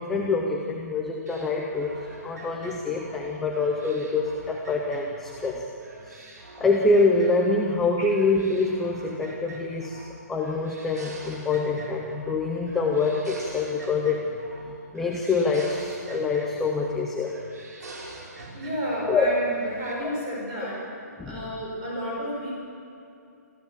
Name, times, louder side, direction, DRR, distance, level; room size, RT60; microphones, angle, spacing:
voice 1, 0.0-5.6 6.1-6.3 6.6-10.0 10.3-14.2 14.9-17.3 19.1-19.3 21.2-21.4, left 3 dB, 5° left, 0 dB, 0.5 m, -25 dB
sound 1, 1.3-5.5 5.8-7.8 8.1-10.1 10.4-12.4 12.7-14.7 14.9-17.0 17.2-19.2 19.5-19.9, right 2 dB, 70° right, 6.0 m, -44 dB
voice 2, 18.5-20.9 21.2-22.5, equal, 20° right, -4 dB, 6.0 m, -31 dB
27.5 x 15.0 x 7.2 m, 2.7 s
hypercardioid pair, 180°, 9 cm